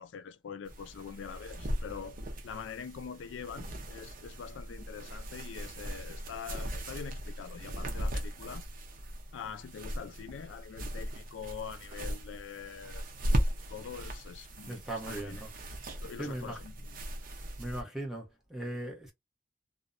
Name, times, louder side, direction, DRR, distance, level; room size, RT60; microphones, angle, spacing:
voice 1, 0.0-2.2 2.4-8.7 9.3-13.0 13.7-15.4 16.0-17.1, left 7 dB, 85° left, 0.3 m, -44 dB
sound 1, 0.7-17.8, equal, 50° right, 0.5 m, -38 dB
voice 2, 14.7-15.5 16.2-16.6 17.6-19.1, right 1 dB, ahead, 0.8 m, -38 dB
2.7 x 2.1 x 2.4 m
head